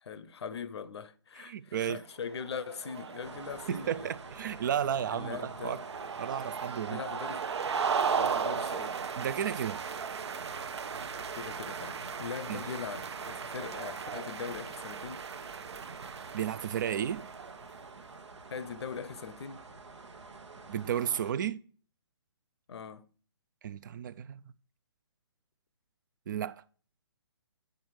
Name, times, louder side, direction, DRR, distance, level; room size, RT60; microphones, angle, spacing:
voice 1, 0.0-4.1 5.1-5.8 6.9-7.5 8.2-9.0 11.4-15.2 18.5-19.6 22.7-23.1, left 6 dB, 65° left, 0.7 m, -41 dB
voice 2, 1.4-2.0 3.7-5.8 6.2-7.0 9.2-9.8 12.5-12.6 16.3-17.3 20.7-21.6 23.6-24.4 26.3-26.6, right 9 dB, 45° right, 0.4 m, -33 dB
sound 1, 2.3-17.9, right 6 dB, 70° right, 0.7 m, -37 dB
sound 2, 3.2-21.3, right 3 dB, 85° right, 1.2 m, -49 dB
9.0 x 5.2 x 4.7 m
hypercardioid pair, 145°, 15 cm